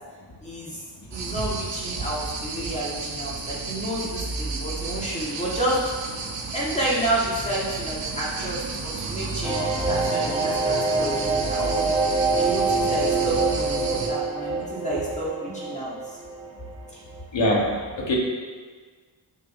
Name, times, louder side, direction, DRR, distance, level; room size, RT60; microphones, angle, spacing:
voice 1, 0.4-0.8 1.1-5.9 6.5-12.0 12.3-16.2 16.9-17.0, right 1 dB, 15° left, -7 dB, 2.0 m, -30 dB
sound 1, 1.1-14.1, right 3 dB, 85° right, 1.2 m, -32 dB
sound 2, 9.4-16.9 17.2-17.3 17.5-17.6, right 3 dB, 5° right, 2.5 m, -26 dB
voice 2, 17.3-18.2, left 1 dB, 75° left, -2 dB, 1.7 m, -24 dB
10.5 x 4.9 x 4.3 m, 1.5 s
wide cardioid pair, 155°, 44 cm